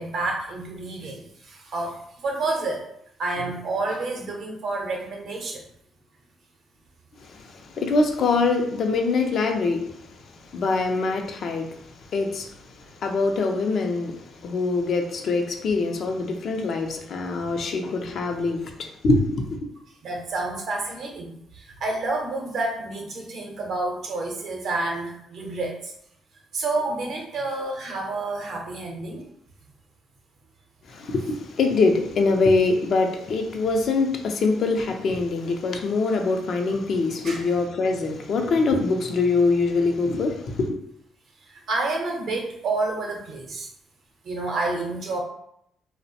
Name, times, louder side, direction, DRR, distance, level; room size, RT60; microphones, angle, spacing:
voice 1, 0.0-2.8 3.2-5.6 20.0-25.9 26.5-29.2 37.2-37.4 41.7-43.7 44.2-45.2, right 2 dB, 65° right, 0.7 m, -29 dB
voice 2, 7.3-9.8 10.5-11.7 12.1-12.5 13.0-14.2 14.4-19.7 30.9-40.8, left 3 dB, 65° left, 0.4 m, -23 dB
2.4 x 2.0 x 2.7 m
supercardioid pair, 65°, 0 cm